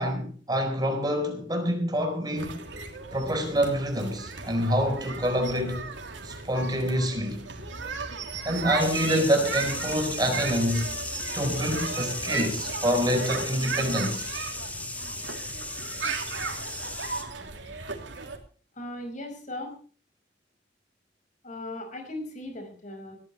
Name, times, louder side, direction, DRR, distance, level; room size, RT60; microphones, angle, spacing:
voice 1, 0.0-2.6 3.1-5.9 6.2-7.4 8.4-10.9 11.3-14.2, equal, 25° right, 4.3 m, -26 dB
sound 1, 2.4-18.4, right 4 dB, 90° right, 3.0 m, -36 dB
sound 2, 8.8-17.2, left 2 dB, 10° left, 2.3 m, -36 dB
voice 2, 18.8-19.8 21.4-23.2, left 1 dB, 45° left, 5.3 m, -38 dB
20.0 x 14.5 x 3.3 m
head